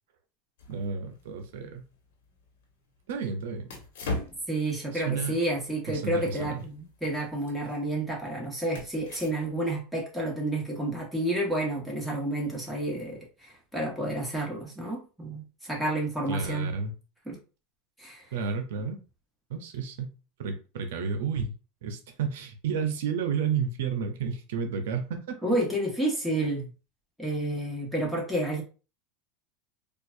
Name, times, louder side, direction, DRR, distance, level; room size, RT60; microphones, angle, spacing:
sound 1, 0.6-9.8, left 2 dB, 80° left, 1.3 m, -42 dB
voice 1, 0.7-1.9 3.1-3.7 4.9-5.4 5.9-6.6 16.3-16.9 18.3-19.0 19.5-20.1 20.4-21.5 21.8-25.3, right 6 dB, 80° right, 6 dB, 0.7 m, -31 dB
voice 2, 4.5-16.7 17.2-17.4 18.0-18.2 25.4-26.7 27.2-28.6, right 1 dB, ahead, -4 dB, 1.4 m, -30 dB
4.4 x 2.5 x 2.6 m, 0.34 s
supercardioid pair, 130°, 0 cm